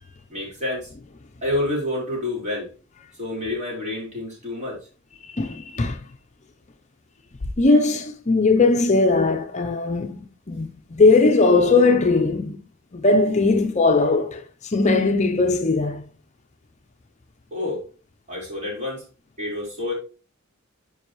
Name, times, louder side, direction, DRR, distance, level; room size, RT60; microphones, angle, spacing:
voice 1, 0.3-0.9 1.4-2.7 3.2-4.8 17.5-17.8 18.3-19.0 19.4-19.9, left 2 dB, 35° right, 4.3 m, -28 dB
voice 2, 5.2-6.0 7.6-10.2 10.5-12.6 12.9-16.0, left 3 dB, 35° left, 0.6 m, -19 dB
10.0 x 5.3 x 3.0 m
head